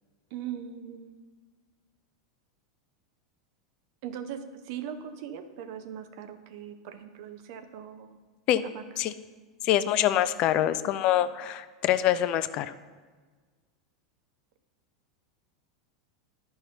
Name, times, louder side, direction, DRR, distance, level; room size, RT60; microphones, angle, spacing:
voice 1, 0.3-1.1 4.0-8.2 8.6-8.9, right 9 dB, 55° right, 9 dB, 0.6 m, -40 dB
voice 2, 9.6-12.7, left 12 dB, 45° left, 13 dB, 0.4 m, -25 dB
11.0 x 5.6 x 2.9 m, 1.4 s
figure-of-eight pair, 85°, 2 cm